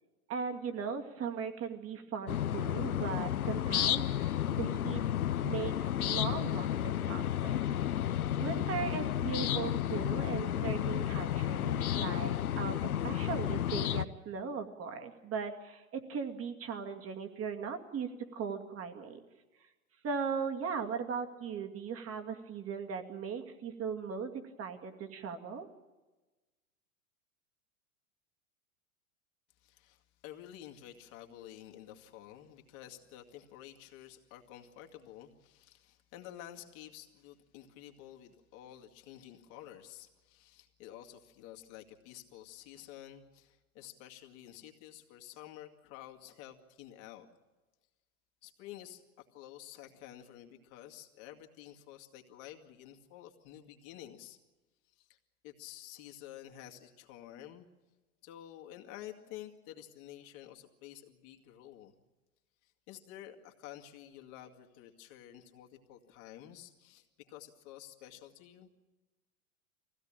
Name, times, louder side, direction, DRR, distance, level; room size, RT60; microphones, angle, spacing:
voice 1, 0.3-5.0 5.4-7.7 8.4-19.2 20.0-24.3 24.6-25.7, right 6 dB, 35° right, 5 dB, 2.4 m, -38 dB
sound 1, 2.3-14.0, left 11 dB, 80° left, 0.8 m, -32 dB
voice 2, 29.6-47.3 48.4-54.4 54.9-55.2 55.4-57.7 58.2-61.9 62.6-68.7, left 12 dB, 50° left, 2 dB, 2.3 m, -51 dB
23.0 x 16.5 x 8.9 m, 1.2 s
hypercardioid pair, 100°, 43 cm